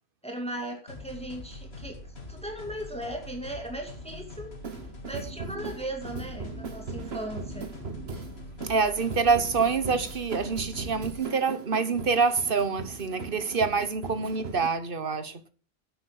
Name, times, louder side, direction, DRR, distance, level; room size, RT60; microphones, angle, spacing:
voice 1, 0.2-2.0 2.3-4.5 5.0-7.7, right 1 dB, 5° left, 2.3 m, -37 dB
sound 1, 0.9-11.2, left 2 dB, 90° left, 2.5 m, -44 dB
sound 2, 4.6-14.7, right 4 dB, 85° right, 1.6 m, -39 dB
voice 2, 8.6-15.5, right 5 dB, 60° right, 1.4 m, -26 dB
10.5 x 8.7 x 6.4 m
omnidirectional pair, 1.0 m